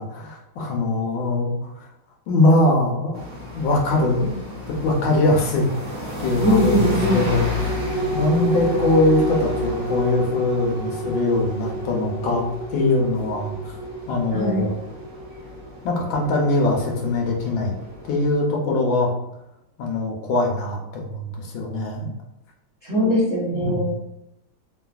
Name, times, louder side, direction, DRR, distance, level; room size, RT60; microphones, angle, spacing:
voice 1, 0.0-1.9 2.3-3.2 3.5-4.4 4.7-5.7 6.2-12.4 12.7-13.8 14.1-14.7 15.8-17.7 18.1-19.1 19.8-22.1 23.5-23.9, left 2 dB, 75° left, -1 dB, 1.3 m, -22 dB
sound 1, 3.1-18.3, left 3 dB, 55° right, 1.0 m, -33 dB
voice 2, 6.4-7.3 14.3-14.7 22.8-23.9, equal, 70° right, -8 dB, 0.6 m, -20 dB
sound 2, 6.6-17.4 17.8-17.9, right 2 dB, 25° right, 0.5 m, -31 dB
3.3 x 2.3 x 2.3 m, 0.83 s
omnidirectional pair, 2.3 m